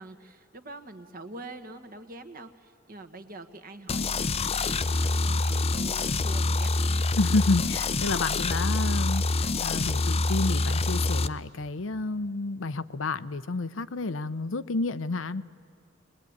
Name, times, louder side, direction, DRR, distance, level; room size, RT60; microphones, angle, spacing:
voice 1, 0.0-6.7, right 2 dB, 45° right, 8 dB, 1.5 m, -45 dB
sound 1, 3.9-11.3, left 3 dB, 30° left, 0.6 m, -26 dB
voice 2, 7.2-15.4, left 3 dB, 70° left, 14 dB, 0.7 m, -30 dB
22.5 x 20.5 x 9.5 m, 2.5 s
head